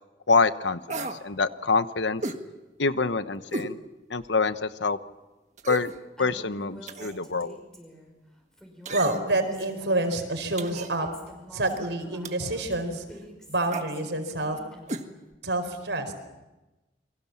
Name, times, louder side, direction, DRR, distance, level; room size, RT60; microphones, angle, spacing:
voice 1, 0.3-2.2 2.8-3.8 4.1-5.0 5.7-5.9 6.2-7.6, left 4 dB, 85° left, 12 dB, 1.1 m, -26 dB
sound 1, 0.9-1.2 2.2-2.4 3.5-3.7 4.2-4.3 5.6-6.0 6.9-7.2 8.9-9.4 10.6-10.9 12.2-12.5 13.7-13.9 14.9-15.1 15.3-15.4, right 3 dB, 40° right, 1.7 m, -34 dB
Female speech woman speaking, 6.2-8.1 8.5-10.5 11.0-15.1, equal, 5° left, 5.4 m, -48 dB
voice 2, 8.9-11.1 11.5-13.0 13.5-14.6 15.4-16.1, right 2 dB, 85° right, 8 dB, 4.6 m, -27 dB
29.5 x 24.0 x 7.4 m, 1.1 s
head